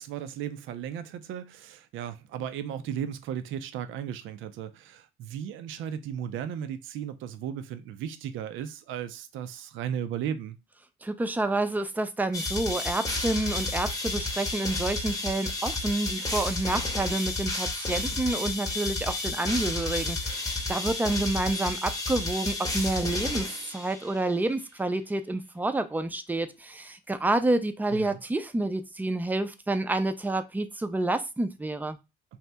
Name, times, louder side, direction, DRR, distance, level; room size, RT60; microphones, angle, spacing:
voice 1, 0.0-10.6 27.9-28.2, right 9 dB, 85° right, 0.4 m, -35 dB
voice 2, 11.0-32.0, right 2 dB, 10° right, 0.4 m, -29 dB
sound 1, 12.3-24.2, left 2 dB, 15° left, 0.8 m, -31 dB
2.8 x 2.1 x 3.3 m
cardioid pair, 90°, 20 cm